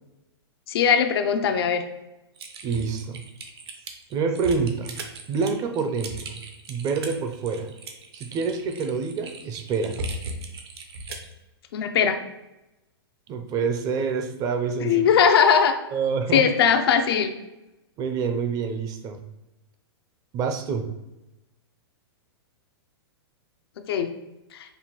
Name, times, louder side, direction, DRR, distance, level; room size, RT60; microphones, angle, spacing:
voice 1, 0.7-1.8 11.7-12.2 14.8-15.7 16.3-17.3 23.9-24.1, left 7 dB, 70° left, 8 dB, 0.4 m, -19 dB
Typing, 2.4-11.3, right 2 dB, 75° right, 0.7 m, -38 dB
voice 2, 2.6-3.2 4.1-5.0 5.3-6.4 6.7-7.7 8.1-10.0 13.3-15.0 15.9-16.5 18.0-19.2 20.3-20.8, right 5 dB, 30° right, 6 dB, 0.4 m, -27 dB
5.3 x 2.2 x 2.9 m, 0.96 s
hypercardioid pair, 125°, 14 cm